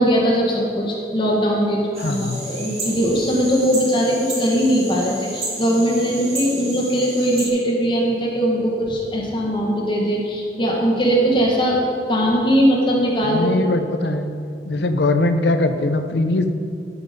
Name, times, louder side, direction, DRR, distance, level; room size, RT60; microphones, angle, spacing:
voice 1, 0.0-1.8 2.1-11.8 12.1-13.5, equal, 30° left, -3 dB, 1.5 m, -20 dB
sound 1, 1.9-7.5, right 2 dB, 35° right, 2.3 m, -32 dB
voice 2, 2.0-2.4 13.2-14.3 14.7-16.5, left 2 dB, 75° left, 8 dB, 0.7 m, -21 dB
13.0 x 6.0 x 5.2 m, 2.4 s
head